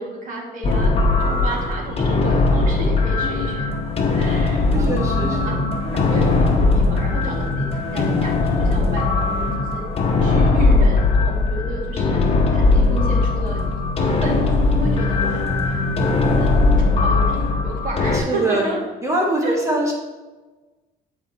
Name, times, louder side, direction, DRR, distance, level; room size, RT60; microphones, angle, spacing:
voice 1, 0.0-3.8 4.1-5.6 5.8-9.9 10.2-12.2 12.5-15.9 16.4-16.6 17.0-18.8 19.4-19.6, right 2 dB, 50° right, -2 dB, 2.1 m, -32 dB
sound 1, 0.6-18.2, left 3 dB, 35° left, 1.0 m, -19 dB
voice 2, 4.7-5.6 18.1-18.7 19.0-19.9, right 1 dB, 20° right, -2 dB, 1.5 m, -23 dB
9.0 x 5.0 x 2.9 m, 1.2 s
cardioid pair, 110°, 17 cm